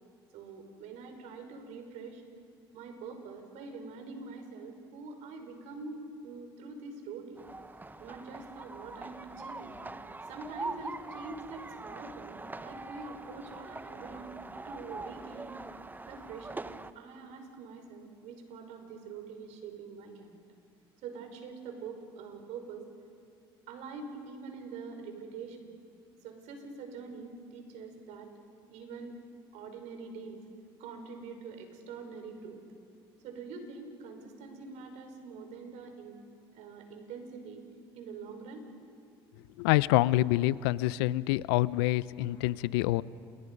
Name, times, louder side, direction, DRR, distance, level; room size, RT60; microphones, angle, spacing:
voice 1, 0.3-2.2 2.7-7.4 8.0-9.8 10.3-15.6 16.0-16.7 16.9-20.4 21.0-22.9 23.7-25.7 26.2-28.3 28.7-29.2 29.5-30.4 30.8-32.6 33.2-36.2 36.5-37.6 37.9-38.7, right 4 dB, 70° right, 5 dB, 5.2 m, -45 dB
sound 1, 7.4-16.9, right 2 dB, 15° right, 1.0 m, -43 dB
voice 2, 39.6-43.0, left 17 dB, 80° left, 19 dB, 0.6 m, -26 dB
30.0 x 28.0 x 5.4 m, 2.4 s
hypercardioid pair, 70°, 13 cm